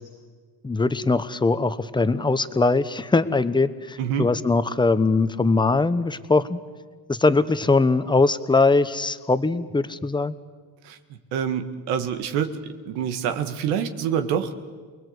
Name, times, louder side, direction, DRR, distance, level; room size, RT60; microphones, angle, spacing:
voice 1, 0.6-6.6 7.1-10.3, left 3 dB, 10° left, 12 dB, 1.1 m, -21 dB
voice 2, 11.3-12.6 12.9-14.5, right 8 dB, 90° right, 8 dB, 2.0 m, -26 dB
29.0 x 20.5 x 8.2 m, 1.5 s
cardioid pair, 105°, 38 cm